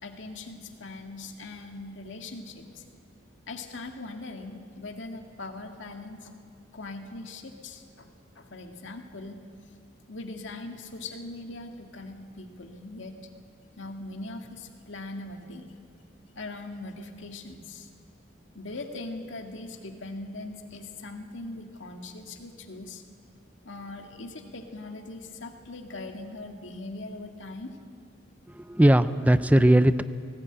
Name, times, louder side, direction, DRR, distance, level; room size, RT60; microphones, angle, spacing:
voice 1, 0.0-2.8 3.5-6.3 6.7-9.4 10.1-13.2 13.8-15.7 16.4-17.9 18.6-23.0 23.7-27.7, left 2 dB, 75° left, 4 dB, 2.0 m, -40 dB
voice 2, 28.5-30.0, right 1 dB, 10° right, 13 dB, 0.5 m, -19 dB
19.0 x 18.5 x 8.9 m, 2.2 s
head